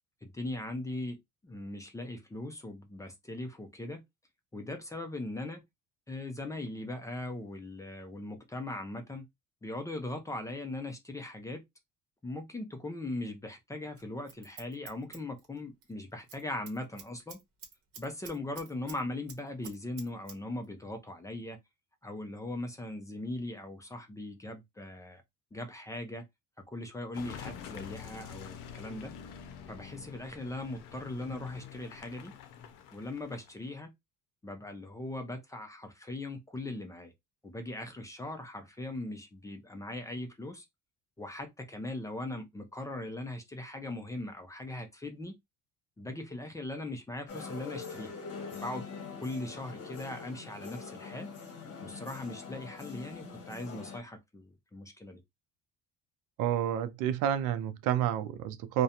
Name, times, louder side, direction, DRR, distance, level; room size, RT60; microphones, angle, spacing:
voice 1, 0.2-1.2 1.4-4.0 4.5-5.6 6.1-9.3 9.6-11.6 12.2-17.4 18.0-21.6 22.0-25.2 25.5-26.2 26.6-29.1 29.7-32.4 32.9-33.9 34.4-37.1 37.4-40.7 41.2-45.4 46.0-48.1 48.5-48.8 49.2-51.3 51.8-55.2, left 2 dB, 10° left, 0.4 m, -39 dB
Scissors, 14.0-15.9 16.2-16.4 16.7-19.0 19.3-20.4 20.6-20.7, right 6 dB, 45° right, 1.0 m, -48 dB
Car passing by / Engine, 27.1-33.7, left 8 dB, 80° left, 0.6 m, -46 dB
sound 1, 47.3-54.0, left 5 dB, 50° left, 1.0 m, -44 dB
voice 2, 56.4-58.8, right 10 dB, 80° right, 0.5 m, -29 dB
2.4 x 2.2 x 2.7 m
cardioid pair, 135°, 32 cm